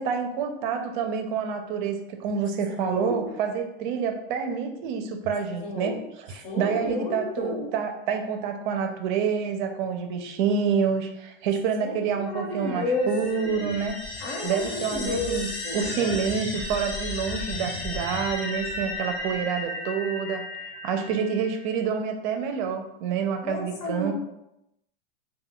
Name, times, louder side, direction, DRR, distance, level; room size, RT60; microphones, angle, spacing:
voice 1, 0.0-6.0 6.3-13.9 14.4-24.1, right 6 dB, 55° right, 6 dB, 0.4 m, -28 dB
voice 2, 2.8-3.3 5.6-6.0 6.4-7.7 11.8-13.7 14.2-16.2 23.4-24.1, left 2 dB, 65° left, 0 dB, 1.0 m, -31 dB
sound 1, 12.5-21.7, left 2 dB, 40° left, 0.7 m, -35 dB
2.2 x 2.2 x 3.6 m, 0.86 s
supercardioid pair, 140°, 30 cm